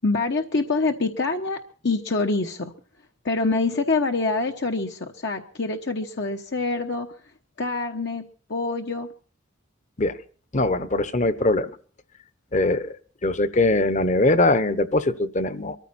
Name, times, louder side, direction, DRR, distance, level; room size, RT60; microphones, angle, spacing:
voice 1, 0.0-1.6 1.8-2.7 3.2-7.1 7.6-8.2 8.5-9.1, left 3 dB, 60° left, 3 dB, 1.1 m, -25 dB
voice 2, 10.5-11.7 12.5-12.9 13.2-15.8, left 2 dB, 35° left, 13 dB, 1.0 m, -21 dB
23.5 x 14.0 x 4.3 m, 0.41 s
head